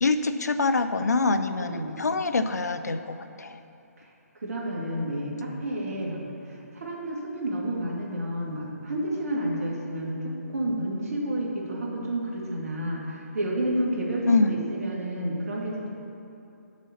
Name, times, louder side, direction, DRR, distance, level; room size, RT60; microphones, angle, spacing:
voice 1, 0.0-3.6 14.3-14.6, left 3 dB, 80° left, 9 dB, 0.6 m, -25 dB
voice 2, 1.6-1.9 4.4-6.2 6.5-15.9, right 1 dB, 65° right, -2 dB, 2.3 m, -30 dB
7.3 x 6.2 x 7.2 m, 2.8 s
figure-of-eight pair, 145°, 9 cm